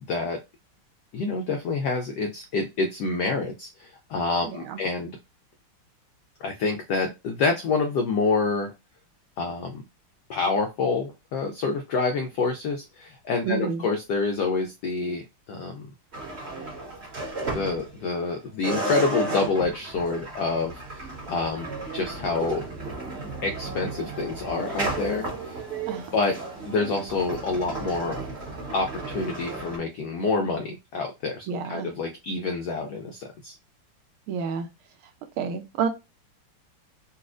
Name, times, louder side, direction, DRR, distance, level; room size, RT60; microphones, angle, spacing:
voice 1, 0.1-0.4 1.1-5.1 6.4-8.7 9.4-9.8 10.3-15.2 15.5-15.9 17.5-20.8 21.3-21.7 21.9-22.7 23.4-25.6 26.1-26.4 26.6-28.2 28.7-33.5, left 4 dB, 80° left, 0.9 m, -27 dB
voice 2, 4.4-4.8 13.4-13.8 25.9-26.1 31.5-31.9 34.3-34.7 35.4-35.9, right 6 dB, 80° right, 1.4 m, -29 dB
sound 1, 16.1-18.3 18.6-29.8, right 2 dB, 35° right, 1.3 m, -34 dB
4.1 x 2.4 x 2.5 m
omnidirectional pair, 2.4 m